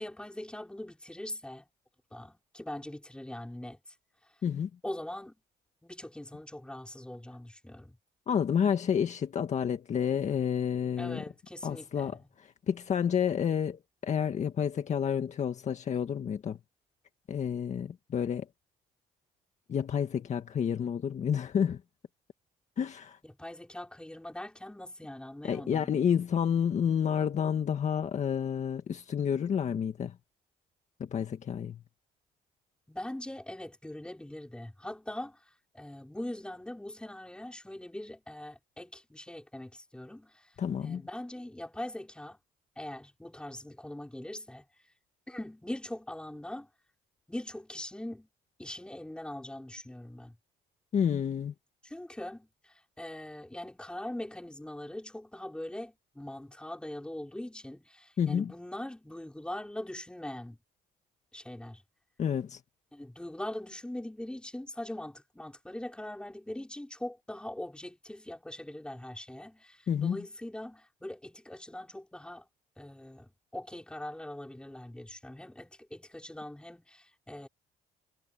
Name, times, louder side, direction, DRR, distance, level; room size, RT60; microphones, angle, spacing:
voice 1, 0.0-1.7 2.1-3.9 4.8-5.4 5.8-8.0 11.0-12.2 23.2-25.9 32.9-35.4 35.7-40.5 40.8-42.4 42.8-44.6 45.3-46.7 47.3-48.3 48.6-50.4 51.8-60.6 61.3-61.8 62.9-72.4 72.8-77.5, left 1 dB, 5° left, 5.4 m, -42 dB
voice 2, 8.3-11.2 11.6-16.6 17.3-18.5 19.7-21.8 22.8-23.2 25.4-30.1 31.0-31.8 40.6-41.0 50.9-51.5 58.2-58.5 62.2-62.6 69.9-70.2, left 8 dB, 45° left, 1.8 m, -30 dB
cardioid pair, 110°, 17 cm